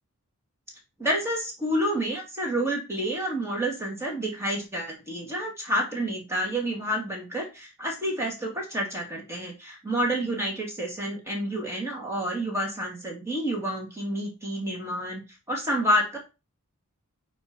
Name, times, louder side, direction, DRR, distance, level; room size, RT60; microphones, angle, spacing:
voice 1, 1.0-15.2 15.5-16.2, equal, 10° right, -1 dB, 2.3 m, -29 dB
9.1 x 3.0 x 5.2 m, 0.28 s
head